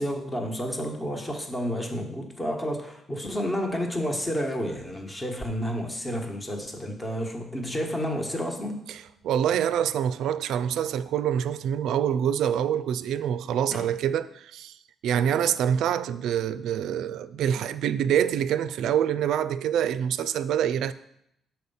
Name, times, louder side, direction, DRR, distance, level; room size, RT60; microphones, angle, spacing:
voice 1, 0.0-8.8 13.7-13.9, equal, 20° left, 1.2 m, -30 dB
voice 2, 8.9-14.8 15.0-20.9, right 9 dB, 80° right, 0.3 m, -26 dB
6.4 x 4.5 x 5.4 m
cardioid pair, 90°, 0 cm